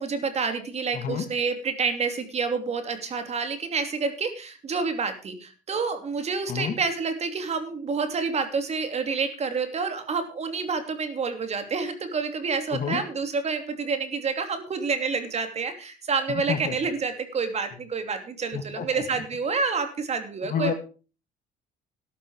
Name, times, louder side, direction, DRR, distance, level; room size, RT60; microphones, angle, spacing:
voice 1, 0.0-20.7, right 5 dB, 40° right, 8 dB, 2.9 m, -28 dB
voice 2, 0.9-1.2 6.5-6.8 12.7-13.0 16.3-16.7 18.5-19.2 20.4-20.7, left 7 dB, 55° left, 8 dB, 2.5 m, -30 dB
13.0 x 11.5 x 4.8 m, 0.35 s
cardioid pair, 110°, 17 cm